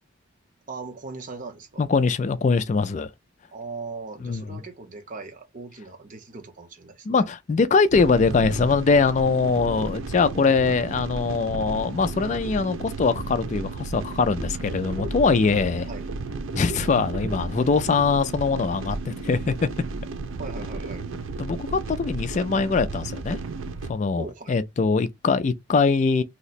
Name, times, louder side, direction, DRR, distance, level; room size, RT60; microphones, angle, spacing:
voice 1, 0.7-1.8 3.5-7.2 15.9-16.1 20.4-21.1 24.2-24.6, right 3 dB, 40° right, 0.7 m, -39 dB
voice 2, 1.8-3.1 4.2-4.6 7.1-15.9 16.5-19.6 21.4-23.4 23.9-26.2, left 4 dB, 35° left, 0.3 m, -22 dB
sound 1, 7.9-23.9, right 3 dB, 90° right, 0.4 m, -33 dB
2.8 x 2.1 x 4.1 m
head